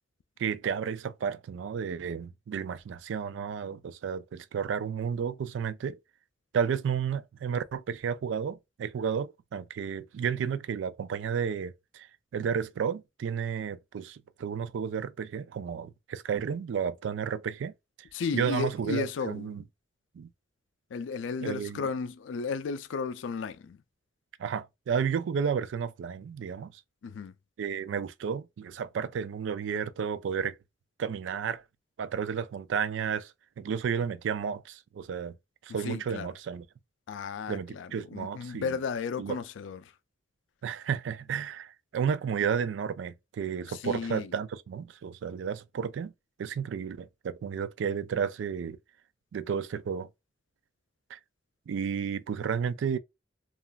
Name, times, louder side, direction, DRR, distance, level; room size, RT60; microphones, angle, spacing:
voice 1, 0.4-6.0 6.5-12.1 12.3-17.7 18.0-18.1 18.3-19.6 20.2-20.3 21.4-21.9 24.4-26.7 27.6-30.6 31.0-31.6 32.0-35.3 35.6-36.7 37.5-38.7 39.2-39.4 40.6-46.1 46.4-48.8 49.3-50.1 51.1-51.2 51.7-53.0, right 7 dB, 85° right, 0.3 m, -32 dB
voice 2, 18.1-19.5 20.9-23.8 27.0-27.3 35.8-36.3 37.1-39.8 43.7-44.3, left 5 dB, 85° left, 0.4 m, -34 dB
3.0 x 2.4 x 2.3 m
head